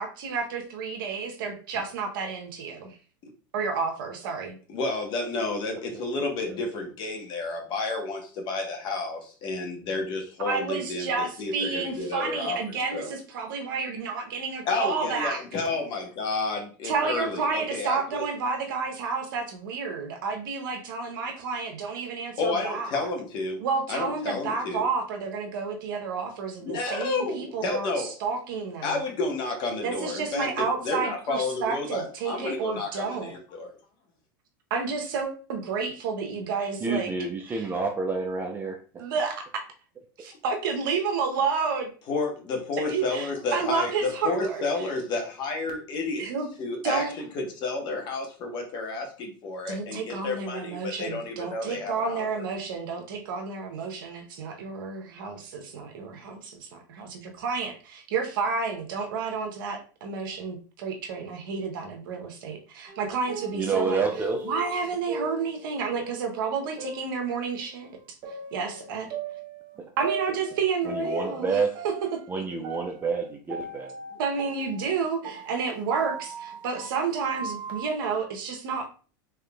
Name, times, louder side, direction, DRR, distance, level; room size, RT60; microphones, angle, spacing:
voice 1, 0.0-3.0 3.5-4.6 10.4-15.4 16.8-23.1 23.6-29.0 29.8-33.3 34.7-37.1 37.5-37.7 39.0-39.4 40.2-41.9 42.7-44.6 46.2-46.5 46.8-47.1 49.7-64.0 64.4-68.2 68.5-69.1 70.0-72.4 74.2-78.9, right 5 dB, 75° right, 4 dB, 0.8 m, -30 dB
voice 2, 4.7-13.1 14.6-18.2 22.4-23.6 23.9-24.8 26.6-28.1 28.8-33.8 42.1-46.3 46.6-47.0 47.3-52.3, left 3 dB, 40° left, 2 dB, 1.1 m, -31 dB
voice 3, 36.8-38.8 63.5-64.4 70.9-71.7 72.3-73.9, right 4 dB, 15° right, 3 dB, 0.5 m, -28 dB
sound 1, 62.9-67.7 68.2-71.5 71.7-77.9, right 3 dB, 40° right, 0.8 m, -38 dB
3.7 x 3.4 x 2.3 m, 0.38 s
supercardioid pair, 120°, 12 cm